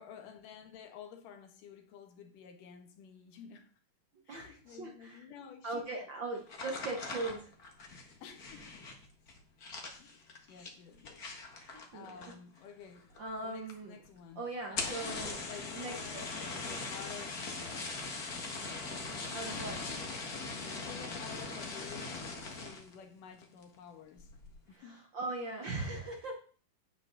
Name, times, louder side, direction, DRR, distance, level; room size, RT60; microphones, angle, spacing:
voice 1, 0.0-3.7 4.3-5.8 8.2-8.7 10.0-11.2 11.9-13.0 13.4-14.4 14.7-16.3 16.6-17.4 19.2-19.5 20.5-24.3 24.7-25.0, left 8 dB, 70° left, 2.8 m, -51 dB
voice 2, 4.3-5.2 5.6-7.5 11.5-12.3 13.2-14.0 14.3-15.4 15.7-16.3 19.3-19.8 24.7-26.4, right 2 dB, 80° right, 1.0 m, -40 dB
sound 1, 6.5-12.6 12.9-13.4 13.7-13.8 14.0-14.1 14.6-22.9 23.4-23.8 24.2-24.5, left 3 dB, 40° left, 1.3 m, -41 dB
10.5 x 9.1 x 3.9 m
omnidirectional pair, 4.0 m